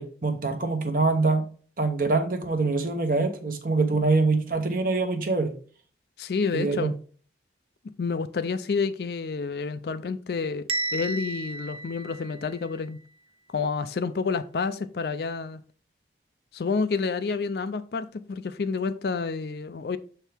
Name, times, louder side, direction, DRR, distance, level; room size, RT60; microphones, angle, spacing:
voice 1, 0.0-1.4 1.8-5.5 6.5-6.9, right 3 dB, 50° right, 0.9 m, -24 dB
voice 2, 6.2-7.0 8.0-13.0 13.5-15.6 16.5-20.0, left 4 dB, 60° left, 0.4 m, -29 dB
Bell, 10.7-12.7, right 2 dB, 30° right, 0.4 m, -33 dB
6.9 x 4.5 x 3.4 m
head